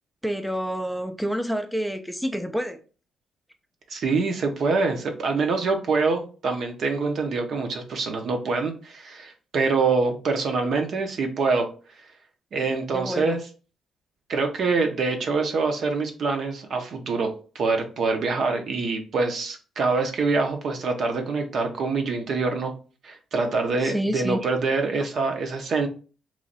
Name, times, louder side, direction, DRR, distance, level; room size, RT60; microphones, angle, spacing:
voice 1, 0.2-2.8 12.9-13.4 23.8-24.5, equal, ahead, 0.4 m, -28 dB
voice 2, 3.9-11.7 12.5-13.4 14.3-22.7 23.0-25.9, right 4 dB, 60° right, 0.7 m, -25 dB
3.1 x 2.5 x 3.9 m
cardioid pair, 90°, 0 cm